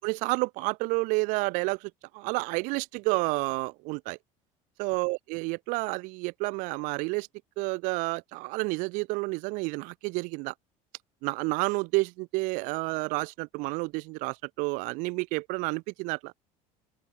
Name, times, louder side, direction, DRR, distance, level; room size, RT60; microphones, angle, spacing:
voice 1, 0.0-4.2 4.8-7.3 7.6-10.5 11.2-16.3, right 27 dB, 65° right, 4.6 m, -30 dB
open air
cardioid pair, 175°, 14 cm